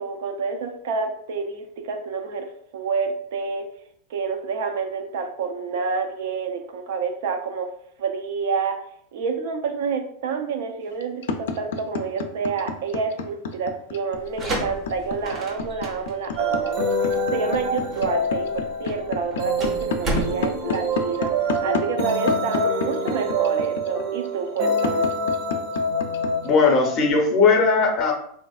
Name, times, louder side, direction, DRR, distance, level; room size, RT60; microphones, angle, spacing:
voice 1, 0.0-3.7 4.1-7.7 8.0-8.8 9.1-21.3 21.6-25.1, right 5 dB, 70° right, 5 dB, 0.4 m, -28 dB
sound 1, 10.9-26.5, left 5 dB, 90° left, 0.4 m, -28 dB
sound 2, 14.1-21.7, right 1 dB, 25° right, 0.6 m, -33 dB
sound 3, 16.4-27.1, equal, 50° right, 0.9 m, -26 dB
voice 2, 26.4-28.1, left 4 dB, 30° left, 1 dB, 0.6 m, -18 dB
3.3 x 2.5 x 2.3 m, 0.66 s
supercardioid pair, 160°, 0 cm